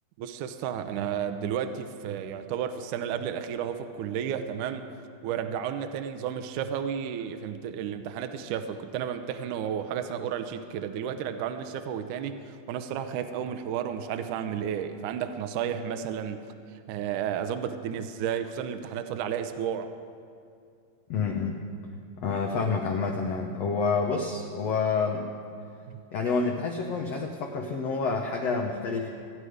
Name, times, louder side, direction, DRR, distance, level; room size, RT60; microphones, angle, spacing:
voice 1, 0.2-4.8 5.2-16.4 16.9-19.9 25.9-26.0, right 8 dB, 80° right, 8 dB, 1.9 m, -32 dB
voice 2, 21.1-21.6 22.2-25.3 26.1-29.1, left 4 dB, 80° left, 2 dB, 1.4 m, -28 dB
25.5 x 9.4 x 5.0 m, 2.4 s
omnidirectional pair, 4.3 m